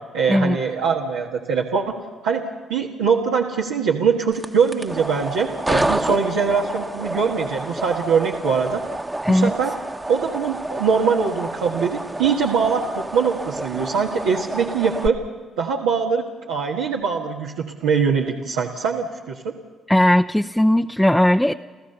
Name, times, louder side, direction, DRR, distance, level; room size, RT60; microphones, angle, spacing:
voice 1, 0.1-2.0 2.2-2.4 2.7-8.8 9.3-9.7 10.1-15.2 15.6-19.5, right 6 dB, 85° right, -3 dB, 1.5 m, -22 dB
sound 1, 4.3-15.1, right 1 dB, 20° right, 1.1 m, -29 dB
voice 2, 19.9-21.5, left 1 dB, 5° left, 5 dB, 0.7 m, -17 dB
29.5 x 14.5 x 6.9 m, 1.4 s
hypercardioid pair, 45°, 0 cm